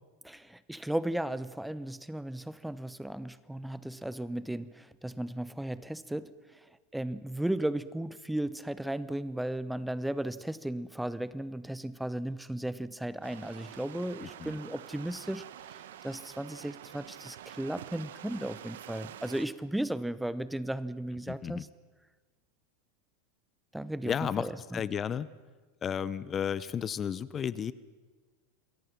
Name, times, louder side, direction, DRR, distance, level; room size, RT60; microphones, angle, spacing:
voice 1, 0.2-6.7 6.9-21.7 23.7-24.8, right 1 dB, 5° right, 16 dB, 0.8 m, -35 dB
sound 1, 13.2-19.5, right 11 dB, 70° right, 1.2 m, -47 dB
voice 2, 14.2-14.6 21.3-21.6 24.0-24.5 24.7-25.3 25.8-27.7, left 8 dB, 30° left, 18 dB, 0.8 m, -33 dB
28.0 x 21.5 x 5.9 m, 1.4 s
hypercardioid pair, 90°, 0 cm